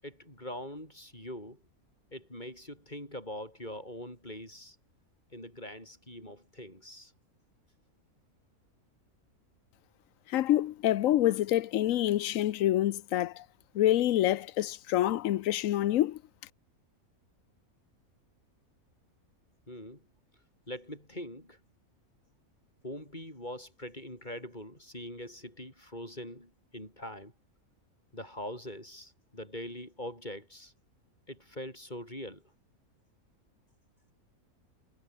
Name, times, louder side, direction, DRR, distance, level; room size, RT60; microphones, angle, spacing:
voice 1, 0.0-1.6 2.1-4.8 5.3-7.1 19.7-20.1 20.7-21.6 22.8-27.3 28.1-30.7 31.3-32.4, left 1 dB, 30° left, 8.2 m, -43 dB
voice 2, 10.3-13.4 13.7-16.2, left 13 dB, 70° left, 1.0 m, -27 dB
omnidirectional pair, 1.5 m